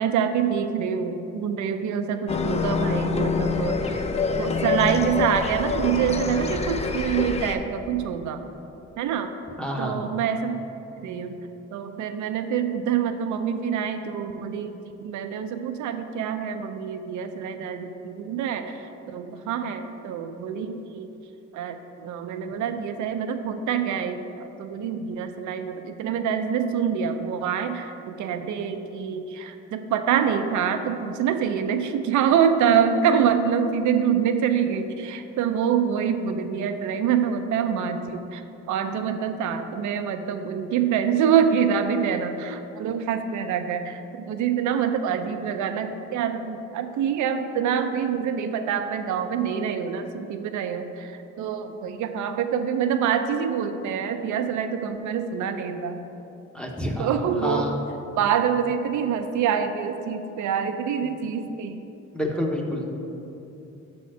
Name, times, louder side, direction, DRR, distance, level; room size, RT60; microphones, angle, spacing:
voice 1, 0.0-4.1 4.3-8.4 9.0-9.3 9.8-10.6 11.0-21.1 21.5-38.4 38.7-56.0 57.0-57.7 58.1-61.8, right 7 dB, 75° right, 7 dB, 0.5 m, -26 dB
sound 1, 2.3-7.6, left 4 dB, 20° left, 0.4 m, -26 dB
voice 2, 9.6-10.0 56.5-57.8 62.1-62.9, equal, 5° left, 0 dB, 0.8 m, -28 dB
5.6 x 4.2 x 6.1 m, 2.9 s
cardioid pair, 90°, 30 cm